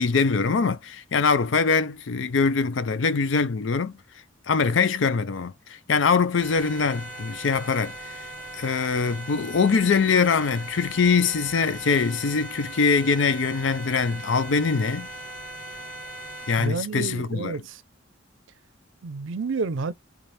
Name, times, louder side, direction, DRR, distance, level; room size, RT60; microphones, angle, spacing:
voice 1, 0.0-3.9 4.5-7.9 8.5-15.1 16.5-17.5, left 5 dB, 75° left, 0.5 m, -23 dB
sound 1, 6.4-16.7, right 1 dB, 45° left, 1.4 m, -39 dB
voice 2, 16.6-17.8 19.0-19.9, right 4 dB, 80° right, 0.5 m, -30 dB
4.2 x 2.5 x 3.2 m
head